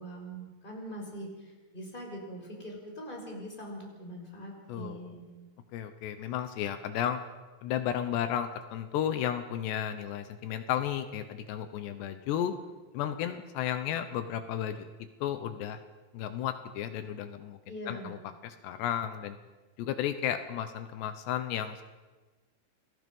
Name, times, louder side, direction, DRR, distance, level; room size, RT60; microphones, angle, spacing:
voice 1, 0.0-5.3 17.7-18.1, equal, 10° left, 0 dB, 5.4 m, -42 dB
voice 2, 4.7-5.0 5.7-7.2 7.6-12.5 12.9-14.9 15.2-15.8 16.1-17.6 17.9-18.2 18.4-19.4 19.8-21.8, left 10 dB, 80° left, 10 dB, 3.2 m, -33 dB
29.0 x 22.0 x 5.5 m, 1.2 s
omnidirectional pair, 4.9 m